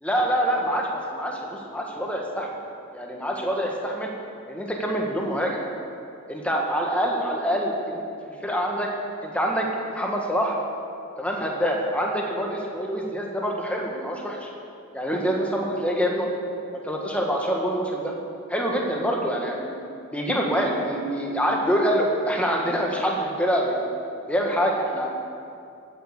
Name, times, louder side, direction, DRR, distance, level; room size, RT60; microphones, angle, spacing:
voice 1, 0.0-2.5 2.9-4.1 4.5-5.6 6.3-8.9 9.2-10.6 11.2-14.5 14.9-16.3 16.8-18.1 18.5-19.7 20.1-23.8 24.3-25.1, equal, 5° left, -1 dB, 1.5 m, -25 dB
15.0 x 8.5 x 6.6 m, 2.5 s
head